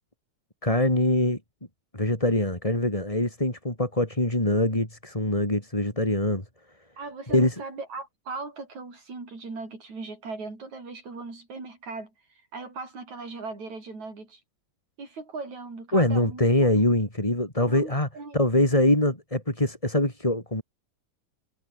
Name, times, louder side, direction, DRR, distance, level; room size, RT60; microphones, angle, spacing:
voice 1, 0.6-1.4 1.9-6.4 7.3-7.5 15.9-18.1 18.3-20.6, left 1 dB, 10° left, 4.7 m, -23 dB
voice 2, 7.0-12.1 12.5-14.4 15.0-16.9 17.7-18.4, right 3 dB, 75° right, 8.9 m, -38 dB
omnidirectional pair, 3.3 m